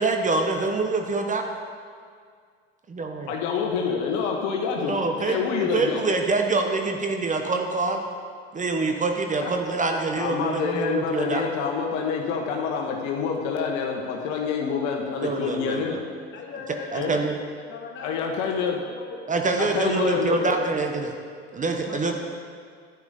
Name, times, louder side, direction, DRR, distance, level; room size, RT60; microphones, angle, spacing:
voice 1, 0.0-1.5 2.9-3.3 4.8-8.0 8.5-11.4 15.2-16.0 16.9-17.4 19.3-21.1 21.5-22.1, right 3 dB, 25° right, 4 dB, 1.0 m, -25 dB
voice 2, 3.3-4.9 5.3-6.0 9.4-9.5 10.1-15.9 16.9-17.1 18.0-18.8 19.6-20.4, left 6 dB, 60° left, 1 dB, 1.3 m, -27 dB
voice 3, 15.6-16.0 16.3-17.4 17.6-19.2 20.0-20.6 21.8-22.1, left 5 dB, 35° left, -1 dB, 2.3 m, -40 dB
10.5 x 10.0 x 4.0 m, 2.1 s
hypercardioid pair, 70°, 32 cm